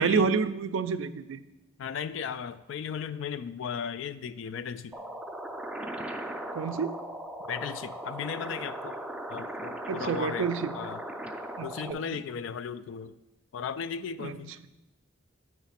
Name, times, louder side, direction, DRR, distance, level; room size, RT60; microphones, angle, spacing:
voice 1, 0.0-1.4 6.5-7.0 9.9-10.8 11.6-12.2 14.2-14.4, right 5 dB, 80° right, 12 dB, 0.4 m, -29 dB
voice 2, 1.8-5.0 7.5-9.0 9.3-11.0 11.6-13.2 13.5-14.5, left 7 dB, 75° left, 14 dB, 0.3 m, -36 dB
sound 1, 4.9-11.9, right 1 dB, 5° right, 0.4 m, -38 dB
9.1 x 3.2 x 5.7 m, 0.99 s
head